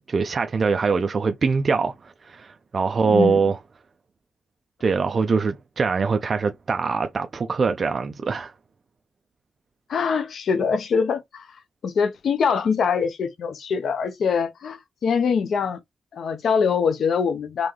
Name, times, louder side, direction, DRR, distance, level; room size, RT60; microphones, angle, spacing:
voice 1, 0.1-3.6 4.8-8.5, right 5 dB, 35° right, 0.4 m, -23 dB
voice 2, 3.0-3.4 9.9-11.6 11.8-15.8 16.1-17.7, left 6 dB, 60° left, 0.7 m, -23 dB
3.8 x 2.7 x 3.1 m
wide cardioid pair, 150°, 0 cm